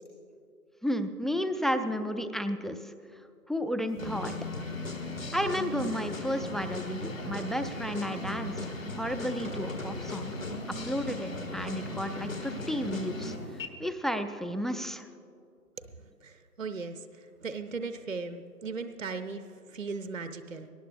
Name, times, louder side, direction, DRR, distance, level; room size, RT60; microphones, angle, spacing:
voice 1, 0.8-2.9 3.5-4.3 5.3-10.3 10.8-15.1, equal, ahead, 8 dB, 0.4 m, -32 dB
sound 1, 4.0-13.7, left 2 dB, 50° left, 1.9 m, -37 dB
voice 2, 16.2-20.7, right 4 dB, 50° right, 9 dB, 0.6 m, -38 dB
21.5 x 18.5 x 2.5 m, 2.5 s
figure-of-eight pair, 170°, 50 cm